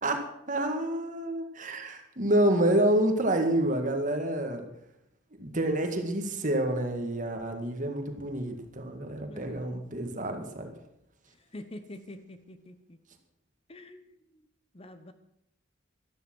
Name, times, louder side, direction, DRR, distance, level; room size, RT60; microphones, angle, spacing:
voice 1, 0.0-4.7 5.4-10.7, right 1 dB, 40° right, 5 dB, 2.0 m, -28 dB
voice 2, 9.3-9.6 11.4-13.0 13.7-14.5 14.7-15.1, left 1 dB, 30° left, 10 dB, 0.9 m, -46 dB
13.5 x 12.5 x 6.1 m, 0.80 s
head